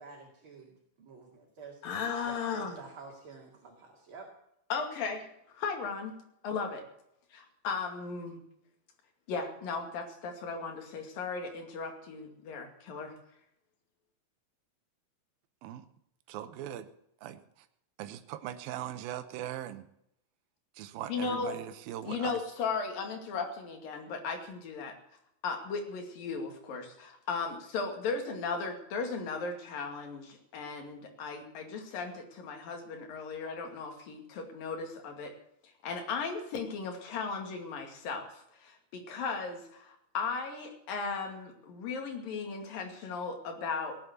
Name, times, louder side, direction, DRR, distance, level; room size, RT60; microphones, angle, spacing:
voice 1, 0.0-1.8 2.2-4.3, right 4 dB, 40° right, -1 dB, 2.8 m, -49 dB
voice 2, 1.8-2.8 4.7-5.3 5.5-6.1 6.4-6.8 7.3-8.4 9.3-13.1 21.1-21.5 22.1-24.9 25.4-35.3 35.8-44.0, left 5 dB, 75° left, 3 dB, 4.1 m, -36 dB
voice 3, 16.3-16.9 17.2-17.4 18.0-19.8 20.8-22.4, right 12 dB, 85° right, 10 dB, 2.7 m, -40 dB
18.0 x 9.0 x 8.2 m, 0.76 s
omnidirectional pair, 4.1 m